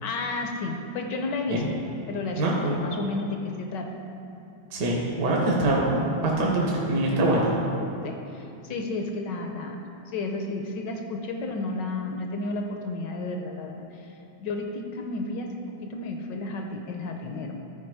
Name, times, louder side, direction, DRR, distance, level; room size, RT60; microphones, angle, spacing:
voice 1, 0.0-1.7 2.1-2.4 2.8-4.0 8.0-9.8 10.1-14.1 14.4-17.6, left 3 dB, 70° left, 3 dB, 1.2 m, -32 dB
voice 2, 2.4-2.8 4.7-7.5, right 1 dB, 55° right, -3 dB, 1.4 m, -24 dB
13.0 x 4.7 x 4.7 m, 2.7 s
omnidirectional pair, 2.3 m